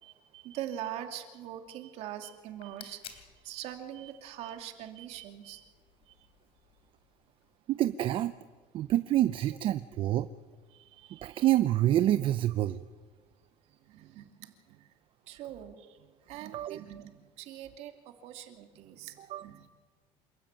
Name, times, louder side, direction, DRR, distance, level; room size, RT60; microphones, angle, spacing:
voice 1, 0.0-5.6 6.1-6.2 10.7-11.4 13.8-14.9 15.3-19.7, right 11 dB, 65° right, 5 dB, 2.7 m, -43 dB
sound 1, 2.3-7.5, left 8 dB, 55° left, 3.3 m, -55 dB
voice 2, 7.7-8.3 8.7-10.3 11.2-12.8 16.5-16.8 19.3-19.4, right 13 dB, 50° right, 13 dB, 0.6 m, -27 dB
27.5 x 13.0 x 9.0 m, 1.5 s
cardioid pair, 130°, 12 cm